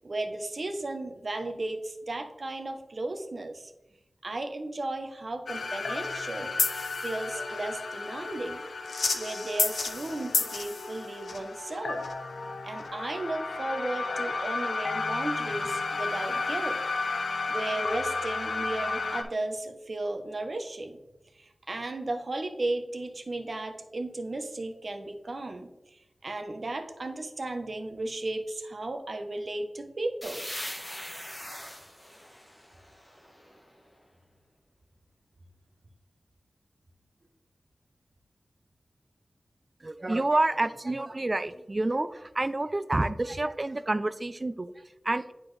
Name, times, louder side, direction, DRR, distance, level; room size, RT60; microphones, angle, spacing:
voice 1, 0.0-3.7 4.2-8.6 9.1-12.0 12.6-16.8 17.3-21.0 21.3-30.4, right 2 dB, 55° right, 6 dB, 0.8 m, -35 dB
sound 1, 5.5-19.2, left 3 dB, 90° left, 0.6 m, -32 dB
sound 2, 30.2-33.8, equal, 20° left, 1.3 m, -41 dB
voice 2, 39.8-45.3, right 2 dB, 35° right, 13 dB, 0.4 m, -29 dB
9.7 x 4.3 x 3.2 m, 0.97 s
wide cardioid pair, 75°, 0 cm